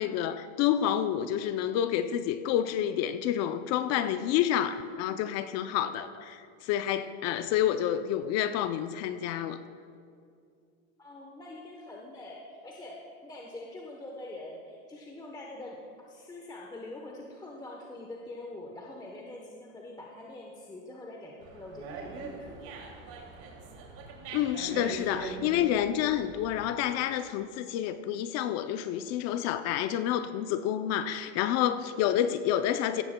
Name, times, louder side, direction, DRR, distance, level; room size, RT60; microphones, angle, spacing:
voice 1, 0.0-9.6 24.3-33.0, left 10 dB, 45° left, 11 dB, 0.5 m, -29 dB
voice 2, 11.0-22.8, left 2 dB, 10° left, -1 dB, 0.9 m, -44 dB
Dog, 21.4-26.8, right 3 dB, 50° right, 2.6 m, -42 dB
16.0 x 14.0 x 2.2 m, 2.4 s
supercardioid pair, 120°, 38 cm